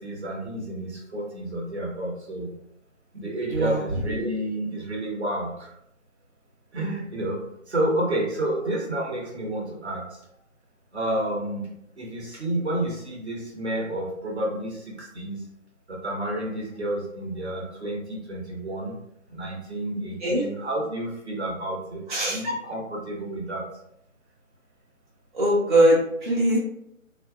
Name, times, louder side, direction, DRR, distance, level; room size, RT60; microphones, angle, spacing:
voice 1, 0.0-2.5 3.1-5.7 6.7-10.2 10.9-15.4 15.9-19.0 19.3-23.7, right 1 dB, 55° right, -2 dB, 1.1 m, -30 dB
voice 2, 22.1-22.4 25.3-26.6, right 1 dB, 35° right, -8 dB, 0.8 m, -21 dB
3.7 x 2.7 x 2.3 m, 0.76 s
figure-of-eight pair, 160°, 41 cm